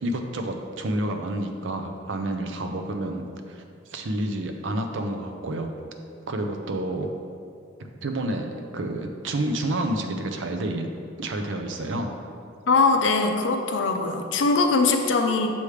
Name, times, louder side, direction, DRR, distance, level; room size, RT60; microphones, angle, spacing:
voice 1, 0.0-3.6 3.9-5.7 6.3-7.1 8.0-10.9 11.2-12.1, right 1 dB, 75° right, 5 dB, 0.6 m, -29 dB
voice 2, 12.7-15.5, left 3 dB, 75° left, 5 dB, 0.5 m, -21 dB
6.9 x 3.2 x 4.9 m, 2.4 s
head